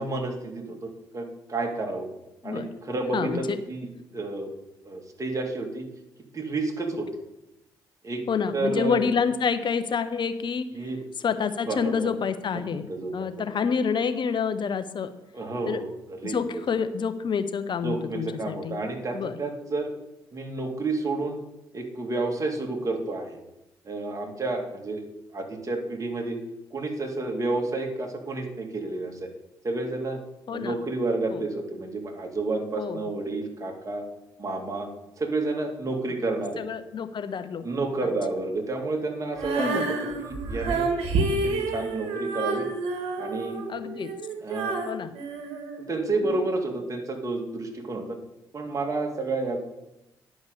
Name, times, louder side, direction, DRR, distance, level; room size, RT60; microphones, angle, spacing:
voice 1, 0.0-2.1 2.4-4.5 4.8-5.8 6.3-7.2 8.0-8.2 8.5-9.0 10.7-11.0 11.7-12.2 12.5-13.5 15.3-16.4 17.8-19.9 20.3-21.4 21.7-23.4 23.8-25.0 25.3-26.4 26.7-29.3 29.6-30.2 30.5-34.0 34.4-34.9 35.2-36.6 37.6-40.9 41.2-42.7 43.2-43.6 44.4-44.8 45.9-48.2 48.5-49.6, right 2 dB, 35° right, 1 dB, 2.3 m, -30 dB
voice 2, 3.1-3.6 8.3-10.7 11.2-12.8 13.1-15.1 15.7-15.8 16.2-18.8 19.1-19.4 30.5-30.8 31.3-31.4 32.8-33.0 36.6-37.6 38.0-38.1 39.6-39.9 43.7-44.1 44.9-45.1, left 6 dB, 50° left, 10 dB, 1.0 m, -28 dB
Female singing, 39.3-46.4, right 3 dB, 75° right, 1.5 m, -29 dB
10.5 x 5.2 x 6.5 m, 0.90 s
hypercardioid pair, 50°, 10 cm